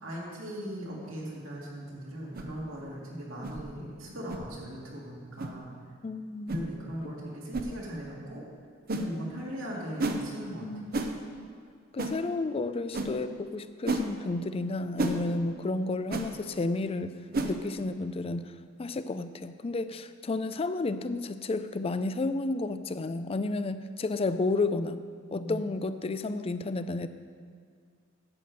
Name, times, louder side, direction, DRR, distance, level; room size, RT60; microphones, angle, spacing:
voice 1, 0.0-5.7 6.5-8.4 9.0-10.7 25.3-25.6, equal, 85° right, -4 dB, 2.6 m, -39 dB
sound 1, 2.3-2.5 3.4-3.6 4.3-4.5 5.4-5.5 6.5-6.7 7.5-7.7 8.9-9.1 10.0-10.2 10.9-11.1 12.0-12.2 12.9-13.1 13.9-14.1 15.0-15.2 16.1-16.3 17.3-17.5, right 2 dB, 50° right, 0.8 m, -30 dB
voice 2, 6.0-6.5 10.6-10.9 11.9-17.2 17.4-18.5 18.8-25.0 25.3-27.1, left 3 dB, 30° left, 11 dB, 0.4 m, -31 dB
11.0 x 5.1 x 7.9 m, 2.1 s
head